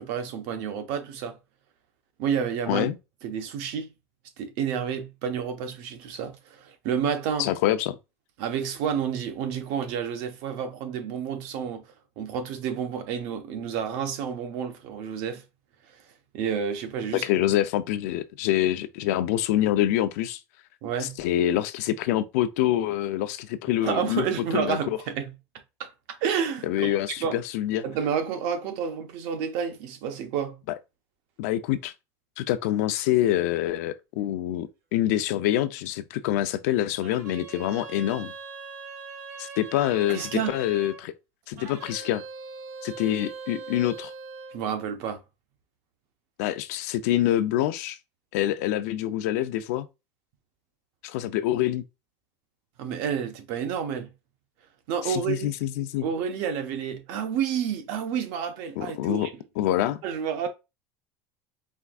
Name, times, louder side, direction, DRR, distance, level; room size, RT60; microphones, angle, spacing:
voice 1, 0.0-1.4 2.2-2.9 3.2-3.9 4.4-7.5 8.4-11.8 12.2-15.4 16.3-17.2 20.8-21.2 23.8-25.3 25.8-25.9 26.2-27.4 27.8-30.6 40.1-40.5 44.5-45.2 52.8-54.1 54.9-55.5 56.0-59.3 60.0-60.5, right 7 dB, 55° right, 0.9 m, -30 dB
voice 2, 7.4-8.0 17.2-20.4 21.0-24.3 24.5-25.0 26.6-27.8 31.4-31.9 32.4-38.3 39.4-41.1 41.5-42.2 42.8-44.1 46.4-48.0 48.3-49.9 51.0-51.8 55.0-56.1 58.8-59.3 59.6-60.0, left 13 dB, 80° left, 0.5 m, -26 dB
sound 1, 37.0-41.0 41.6-44.6, right 4 dB, 85° right, 1.5 m, -41 dB
4.5 x 3.5 x 2.4 m
cardioid pair, 175°, 8 cm